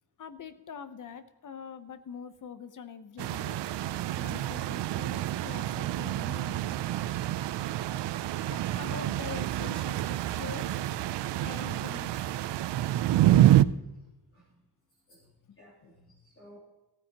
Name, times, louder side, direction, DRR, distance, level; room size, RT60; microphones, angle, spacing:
voice 1, 0.2-3.6 4.2-6.9 8.4-10.8 11.4-12.2 15.5-15.6 15.8-15.9, left 7 dB, 45° left, 11 dB, 0.8 m, -44 dB
sound 1, 3.2-13.6, right 13 dB, 80° right, 0.5 m, -27 dB
voice 2, 13.5-13.9 14.3-14.6 15.1-16.6, equal, 30° left, -6 dB, 3.0 m, -57 dB
15.5 x 13.5 x 2.9 m, 1.1 s
wide cardioid pair, 155°, 41 cm